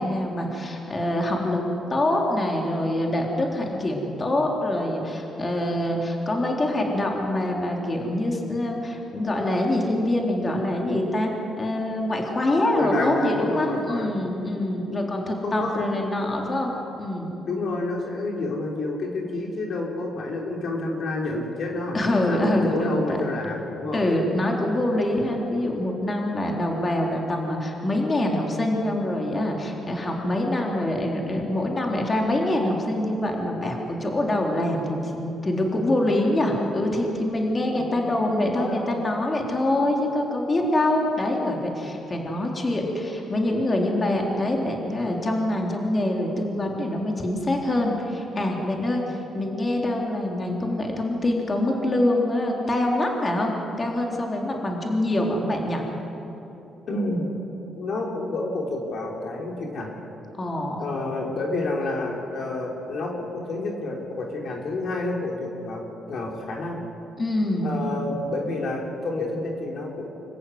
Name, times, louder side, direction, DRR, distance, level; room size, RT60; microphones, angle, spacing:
voice 1, 0.0-11.3 11.6-16.7 17.0-17.4 21.9-23.3 23.9-55.8 60.3-60.8 67.2-67.8, left 1 dB, 30° left, 0 dB, 3.7 m, -25 dB
voice 2, 12.8-14.3 14.9-15.0 15.4-16.0 17.5-22.0 22.3-24.0 37.7-39.0 56.9-57.4 57.7-59.9 60.8-66.8 67.6-70.1, left 2 dB, 60° left, 0 dB, 3.5 m, -29 dB
26.0 x 14.5 x 9.6 m, 3.0 s
cardioid pair, 90°, 0 cm